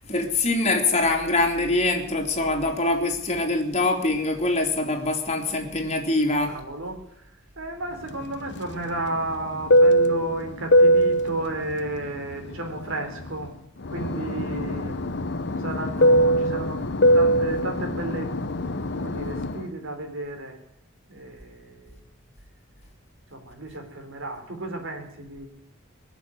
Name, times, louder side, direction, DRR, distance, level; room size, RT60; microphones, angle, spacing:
voice 1, 0.1-6.6, left 2 dB, 30° left, 1 dB, 2.8 m, -24 dB
voice 2, 6.4-7.3 7.6-13.5 13.9-15.0 15.6-18.3 19.0-20.6 21.1-22.0 23.3-25.5, right 2 dB, 65° right, 4 dB, 3.7 m, -33 dB
Fixed-wing aircraft airplane, 8.1-13.5 13.8-19.7, equal, 55° left, 0.9 m, -22 dB
21.0 x 7.3 x 9.5 m, 0.72 s
head